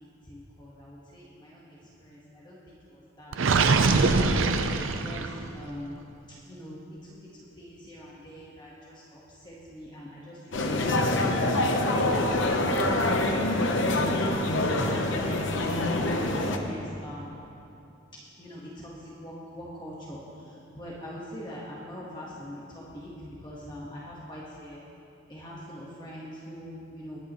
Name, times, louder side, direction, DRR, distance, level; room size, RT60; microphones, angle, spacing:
voice 1, 0.3-1.7 2.0-2.2 2.4-3.7 5.0-5.2 5.5-6.0 6.5-6.8 7.1-7.3 7.6-8.9 9.4-12.0 14.6-16.2 16.5-17.3 18.4-20.2 20.7-23.1 23.4-24.8 25.3-27.2, equal, 20° left, -6 dB, 1.3 m, -43 dB
Gurgling, 3.3-5.5, right 4 dB, 80° right, 0.6 m, -23 dB
sound 1, 10.5-16.6, left 1 dB, 65° left, 0.9 m, -25 dB
20.0 x 9.7 x 3.0 m, 2.7 s
head